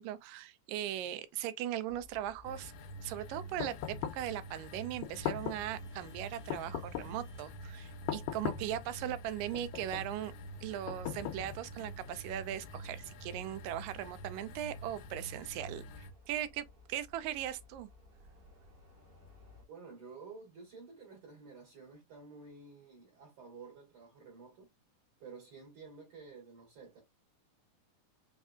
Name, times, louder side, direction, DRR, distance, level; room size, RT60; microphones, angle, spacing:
voice 1, 0.0-2.7 3.0-10.3 10.6-17.9, right 12 dB, 90° right, 2.3 m, -39 dB
sound 1, 1.9-19.7, left 3 dB, 30° right, 1.0 m, -59 dB
sound 2, 2.4-16.1, right 1 dB, 75° left, 1.8 m, -47 dB
sound 3, 3.6-4.3 5.0-5.7 6.5-7.3 8.1-8.8 9.5-10.1 10.9-11.8, left 12 dB, 90° left, 2.2 m, -39 dB
voice 2, 19.7-24.7 25.2-27.0, right 4 dB, 50° right, 2.4 m, -51 dB
5.3 x 3.6 x 2.2 m
omnidirectional pair, 3.7 m